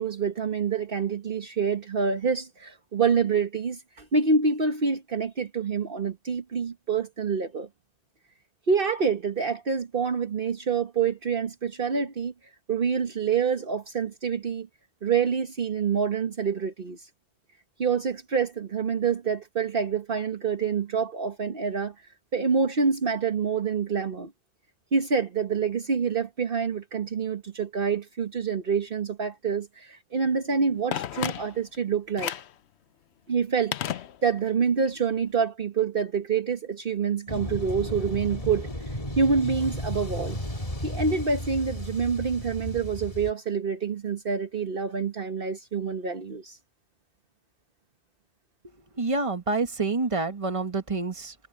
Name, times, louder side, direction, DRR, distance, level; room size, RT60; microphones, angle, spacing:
voice 1, 0.0-7.7 8.7-12.3 12.7-14.7 15.0-17.0 17.8-21.9 22.3-24.3 24.9-32.3 33.3-40.4 40.8-46.6, right 5 dB, 60° right, 1.4 m, -27 dB
Telephone, 30.9-31.8 32.2-32.6 33.7-34.6 34.9-35.0, left 10 dB, 90° left, 0.9 m, -32 dB
sound 1, 37.3-43.3, left 1 dB, 35° left, 2.9 m, -34 dB
voice 2, 49.0-51.3, right 3 dB, 30° right, 1.6 m, -27 dB
omnidirectional pair, 1.1 m